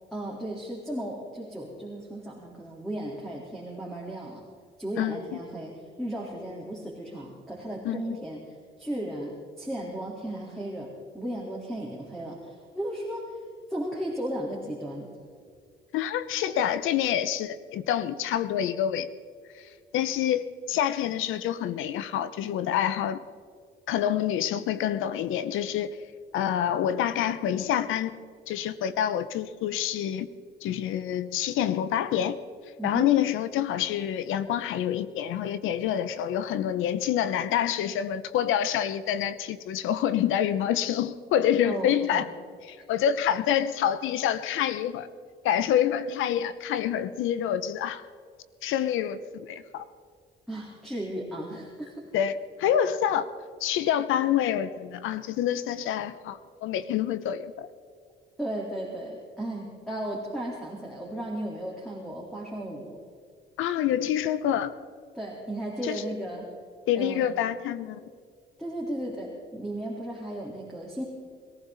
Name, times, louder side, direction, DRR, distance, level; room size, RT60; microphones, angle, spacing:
voice 1, 0.1-4.4 4.8-13.4 13.7-15.1 32.8-33.1 41.6-42.3 42.8-42.9 50.5-52.1 58.4-63.0 65.1-66.5 66.9-67.3 68.6-71.0, right 1 dB, ahead, 3.8 m, -35 dB
voice 2, 15.9-19.1 19.5-23.2 23.9-26.0 26.3-30.3 30.6-32.4 32.8-42.2 42.6-45.1 45.4-48.0 48.6-49.8 52.1-53.3 53.6-57.7 63.6-64.7 65.8-66.0 66.9-68.0, left 10 dB, 90° left, 0.8 m, -27 dB
23.5 x 15.0 x 4.0 m
cardioid pair, 90°, 20 cm